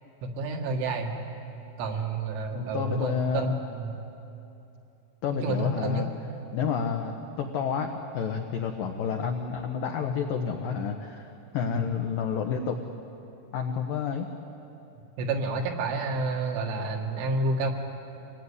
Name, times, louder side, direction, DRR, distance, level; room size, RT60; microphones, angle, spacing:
voice 1, 0.2-1.1 1.8-4.0 5.4-6.0 15.2-17.7, right 3 dB, 75° right, 2 dB, 4.2 m, -29 dB
voice 2, 2.5-3.6 5.2-6.1 6.5-11.3 11.5-12.8 13.5-14.3, left 6 dB, 85° left, 3 dB, 1.9 m, -30 dB
26.0 x 18.5 x 9.7 m, 2.8 s
omnidirectional pair, 5.7 m